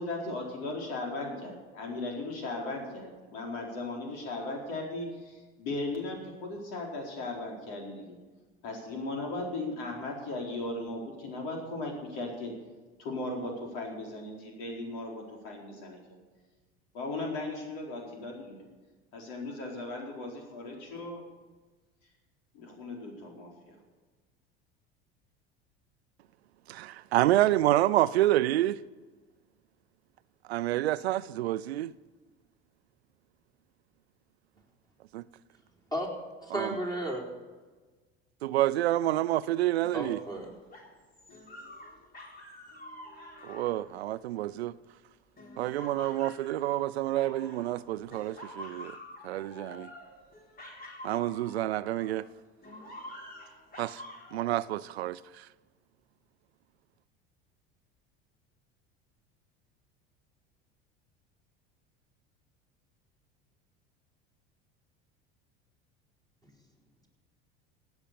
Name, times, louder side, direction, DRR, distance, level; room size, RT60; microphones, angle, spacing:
voice 1, 0.0-8.2 8.6-12.5 13.0-16.0 16.9-18.7 19.1-21.2 22.5-23.8, left 2 dB, 70° left, 4.4 m, -37 dB
voice 2, 26.7-28.8 30.5-31.9 35.1-35.2 36.5-36.7 38.4-40.2 43.4-44.7 45.6-48.9 49.2-49.9 51.0-52.2 53.8-54.0 54.3-55.4, right 14 dB, 90° right, 0.5 m, -28 dB
voice 3, 36.4-37.2 39.9-40.5, right 1 dB, 10° left, 4.4 m, -33 dB
sound 1, 39.8-44.8 45.4-47.8 48.1-52.3 52.6-54.5, left 1 dB, 30° left, 3.7 m, -48 dB
16.5 x 8.9 x 6.9 m
hypercardioid pair, 85°, 31 cm